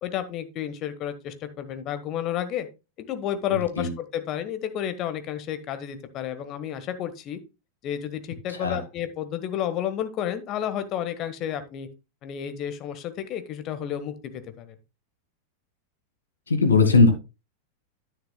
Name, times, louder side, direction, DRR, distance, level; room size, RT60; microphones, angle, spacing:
voice 1, 0.0-2.7 3.0-7.4 7.8-11.9 12.2-14.7, left 10 dB, 35° left, 11 dB, 1.2 m, -31 dB
voice 2, 3.5-3.9 8.5-8.8 16.5-17.1, left 4 dB, 70° left, 7 dB, 1.7 m, -19 dB
10.0 x 9.6 x 2.2 m, 0.27 s
figure-of-eight pair, 90°, 0 cm